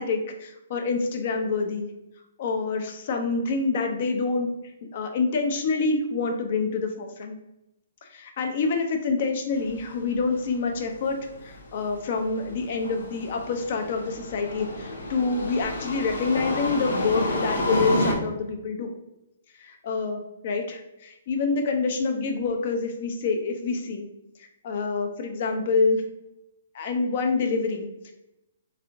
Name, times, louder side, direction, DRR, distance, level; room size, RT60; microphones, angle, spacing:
voice 1, 0.0-1.9 2.4-4.5 4.9-7.3 8.1-11.1 11.4-18.9 19.6-24.1 24.6-26.0 26.7-28.1, left 4 dB, 50° left, 5 dB, 0.7 m, -27 dB
sound 1, 9.6-18.1, left 2 dB, 80° left, 0.9 m, -30 dB
3.6 x 3.3 x 3.5 m, 0.89 s
hypercardioid pair, 155°, 0 cm